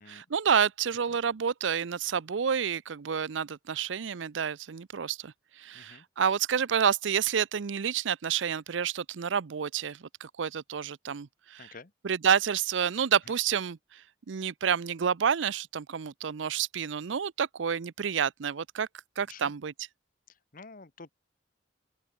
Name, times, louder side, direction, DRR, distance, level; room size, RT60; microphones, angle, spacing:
voice 1, 0.1-11.7 12.0-14.0 14.3-18.9 19.2-19.7, right 7 dB, 85° right, 0.5 m, -29 dB
voice 2, 11.6-11.9 19.3-19.5 20.5-21.1, left 4 dB, 50° left, 1.3 m, -48 dB
open air
head